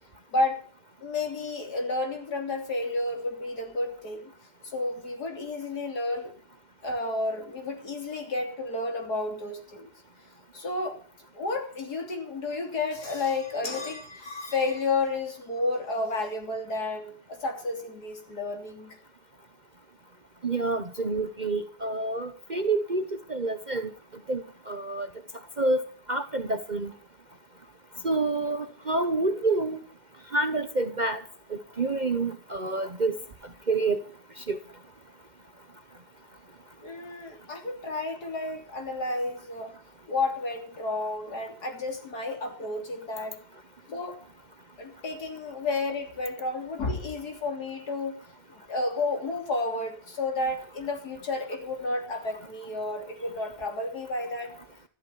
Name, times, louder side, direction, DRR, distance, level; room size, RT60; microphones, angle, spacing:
voice 1, 1.0-4.3 4.7-6.3 6.8-9.9 10.5-11.0 11.3-19.0 36.8-39.7 40.1-43.4 43.9-44.2 44.8-48.2 48.5-54.5, left 2 dB, 70° left, 4 dB, 3.7 m, -31 dB
voice 2, 20.4-23.9 24.3-25.1 25.6-25.8 26.1-26.9 28.0-29.8 30.3-31.2 31.5-33.2 33.7-34.0 34.4-34.6, right 3 dB, 35° right, 8 dB, 1.0 m, -28 dB
13.5 x 12.5 x 6.9 m, 0.43 s
omnidirectional pair, 1.7 m